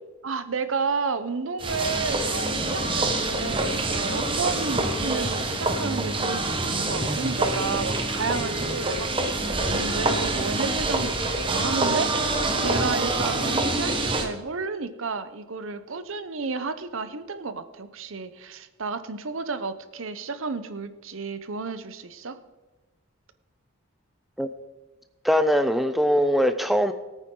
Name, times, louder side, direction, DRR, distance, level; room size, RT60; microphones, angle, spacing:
voice 1, 0.2-22.4, right 4 dB, 70° right, 12 dB, 0.8 m, -32 dB
sound 1, 1.6-14.3, right 2 dB, 25° right, 1.0 m, -26 dB
voice 2, 25.2-26.9, equal, ahead, 9 dB, 0.4 m, -21 dB
18.0 x 9.1 x 3.8 m, 1.1 s
head